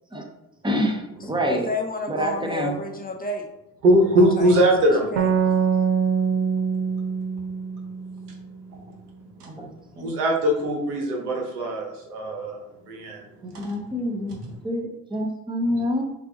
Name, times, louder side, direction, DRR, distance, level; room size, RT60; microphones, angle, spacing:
voice 1, 0.6-1.7 2.1-2.7 9.5-9.7 10.0-10.2 13.4-16.0, equal, 10° right, 2 dB, 1.0 m, -27 dB
voice 2, 1.4-3.5 4.1-5.3, left 3 dB, 20° left, 2 dB, 0.7 m, -31 dB
voice 3, 3.8-5.1 10.0-12.6 12.9-13.2 14.3-14.4, right 1 dB, 75° right, 0 dB, 1.1 m, -21 dB
sound 1, 5.2-8.7, right 6 dB, 55° right, 0.7 m, -24 dB
6.0 x 2.6 x 2.9 m, 0.89 s
figure-of-eight pair, 50°, 46 cm